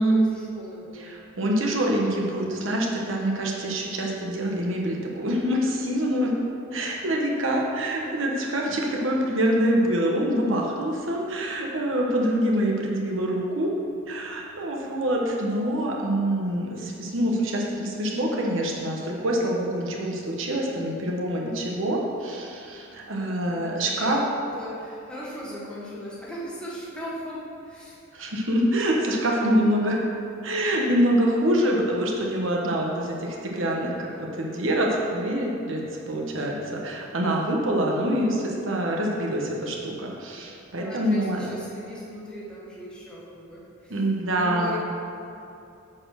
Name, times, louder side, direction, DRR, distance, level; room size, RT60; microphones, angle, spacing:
voice 1, 0.0-1.1 23.4-28.0 40.8-44.0 44.3-44.8, left 1 dB, 5° left, -7 dB, 1.3 m, -38 dB
voice 2, 0.9-6.3 6.7-13.7 14.1-24.2 28.1-30.0 30.4-41.5 43.9-44.8, right 1 dB, 65° right, -1 dB, 1.1 m, -25 dB
7.6 x 4.4 x 6.3 m, 2.6 s
head